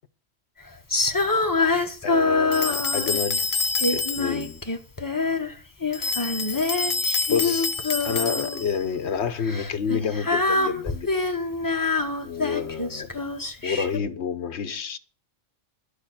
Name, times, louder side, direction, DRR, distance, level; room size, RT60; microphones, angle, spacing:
Female singing, 0.9-3.3 3.8-5.5 5.8-8.6 9.4-14.0, left 3 dB, 20° left, 0.9 m, -25 dB
voice 1, 2.0-3.5 3.9-4.6 7.3-7.6 8.0-11.1 12.2-13.1 13.6-15.0, left 6 dB, 65° left, 1.1 m, -28 dB
sound 1, 2.5-4.5 5.9-8.8, left 4 dB, 40° left, 0.6 m, -27 dB
12.0 x 6.7 x 7.3 m
omnidirectional pair, 1.3 m